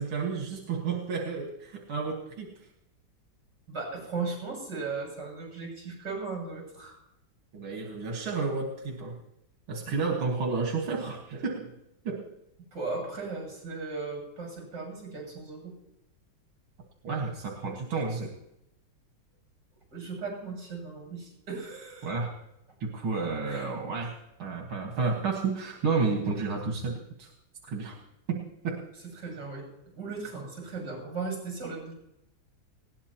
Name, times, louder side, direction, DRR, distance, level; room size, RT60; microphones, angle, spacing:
voice 1, 0.0-2.6 7.5-9.2 9.7-11.7 12.0-12.3 17.0-18.3 22.0-22.3 22.8-27.3 27.6-28.0 28.3-28.9, right 4 dB, 90° right, 0 dB, 2.5 m, -31 dB
voice 2, 3.7-7.0 12.7-15.7 19.9-22.1 23.5-23.7 29.2-29.6 29.9-31.9, right 4 dB, 55° right, -1 dB, 8.0 m, -37 dB
20.0 x 17.5 x 2.9 m, 0.82 s
omnidirectional pair, 2.2 m